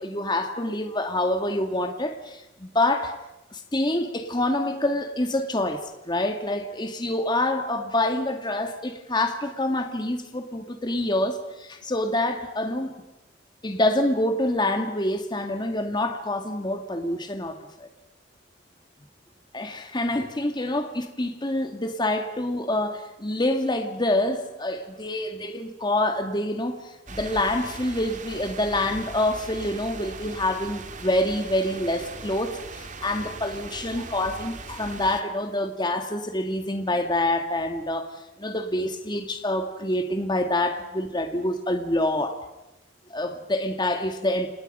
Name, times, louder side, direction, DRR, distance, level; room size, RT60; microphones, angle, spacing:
voice 1, 0.0-3.2 3.5-12.9 13.6-17.9 19.5-26.8 27.1-38.1 38.4-42.4 43.1-44.5, left 1 dB, 25° left, 6 dB, 1.9 m, -26 dB
sound 1, 27.1-35.2, right 3 dB, 40° right, 2.0 m, -40 dB
30.0 x 28.0 x 5.5 m, 0.95 s
head